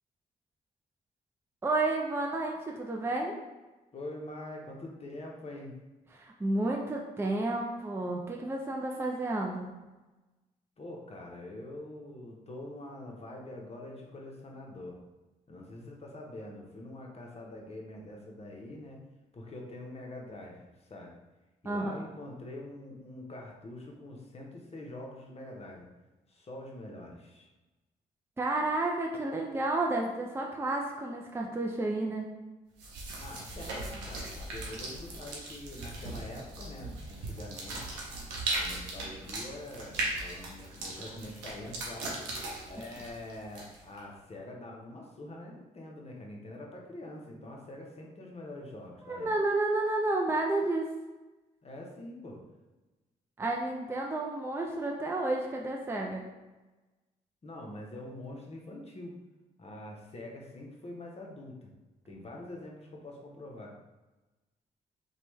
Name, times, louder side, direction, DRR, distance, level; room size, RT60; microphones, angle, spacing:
voice 1, 1.6-3.3 6.1-9.7 21.6-21.9 28.4-32.2 49.1-50.9 53.4-56.2, right 2 dB, 15° right, 0 dB, 0.4 m, -31 dB
voice 2, 3.9-5.8 10.8-15.0 15.5-19.0 19.3-21.1 21.6-25.9 26.3-27.5 33.2-37.9 38.5-49.3 51.6-52.4 57.4-59.2 59.6-61.7 62.1-63.8, left 1 dB, 35° left, -1 dB, 0.8 m, -45 dB
sound 1, 32.8-44.0, right 2 dB, 90° right, 0.5 m, -38 dB
3.1 x 2.2 x 3.0 m, 1.1 s
supercardioid pair, 50°, 18 cm